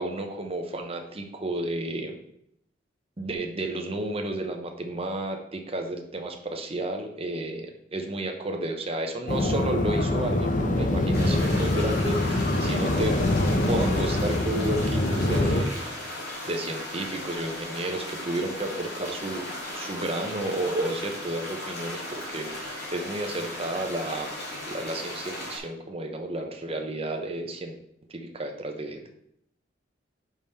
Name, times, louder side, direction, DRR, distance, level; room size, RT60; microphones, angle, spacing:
voice 1, 0.0-2.2 3.2-7.7 7.9-13.2 13.7-15.7 16.5-24.4 24.7-27.8 28.1-29.1, right 1 dB, 30° right, 3 dB, 1.0 m, -32 dB
sound 1, 9.3-15.6, left 1 dB, 45° left, 0.8 m, -24 dB
sound 2, 11.1-25.6, left 1 dB, 60° left, 2.3 m, -37 dB
5.4 x 5.0 x 5.6 m, 0.74 s
head